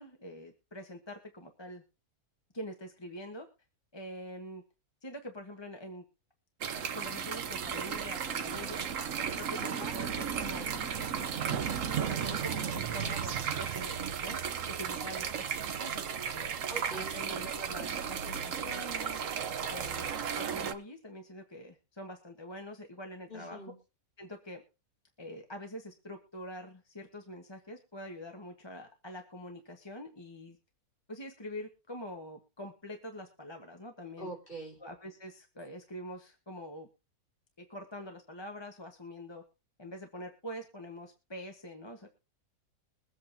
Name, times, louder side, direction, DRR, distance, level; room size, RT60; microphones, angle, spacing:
voice 1, 0.0-1.8 2.5-3.5 3.9-4.6 5.0-6.0 6.7-8.9 9.3-10.8 11.5-14.4 14.7-16.5 16.9-19.2 19.7-23.6 24.2-24.6 25.2-30.6 31.1-34.3 34.8-36.9 37.6-39.4 39.8-42.1, equal, 20° left, 3 dB, 1.2 m, -45 dB
sound 1, 6.6-20.7, right 7 dB, 60° right, 1.2 m, -34 dB
voice 2, 9.6-10.0 16.7-17.2 23.3-23.8 34.2-34.8, right 2 dB, 35° left, -2 dB, 3.8 m, -43 dB
22.5 x 8.2 x 2.8 m, 0.31 s
omnidirectional pair, 1.6 m